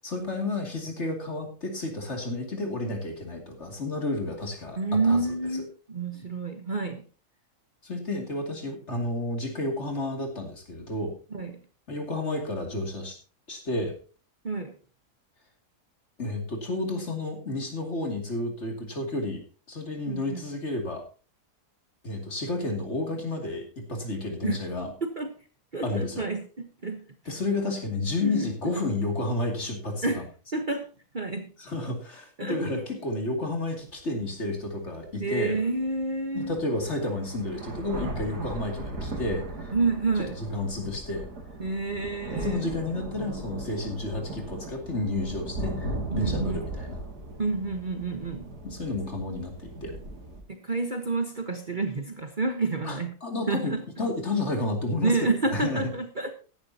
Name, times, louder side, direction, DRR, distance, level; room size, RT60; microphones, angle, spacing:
voice 1, 0.0-5.3 7.8-11.1 11.9-13.2 13.5-14.0 16.2-21.0 22.0-24.9 25.8-26.3 27.3-30.2 31.6-35.5 36.3-39.7 40.4-41.2 42.4-47.0 48.6-50.0 52.8-55.1 55.5-55.8, left 2 dB, 45° left, 3 dB, 2.9 m, -31 dB
voice 2, 4.8-7.0 11.3-11.6 14.4-14.7 20.1-20.4 24.4-24.6 25.0-25.3 25.7-27.0 28.2-28.7 30.0-30.2 30.5-30.9 31.1-31.5 32.4-32.8 35.2-36.6 39.7-40.4 41.6-42.7 46.1-46.7 47.4-48.5 50.5-53.1 53.5-53.8 55.0-56.3, right 3 dB, 35° right, 5 dB, 1.2 m, -29 dB
sound 1, 33.9-34.0 34.6-34.7 36.0-36.1 36.4-50.4, right 2 dB, 85° right, 2.9 m, -37 dB
16.0 x 11.5 x 2.8 m, 0.35 s
omnidirectional pair, 1.7 m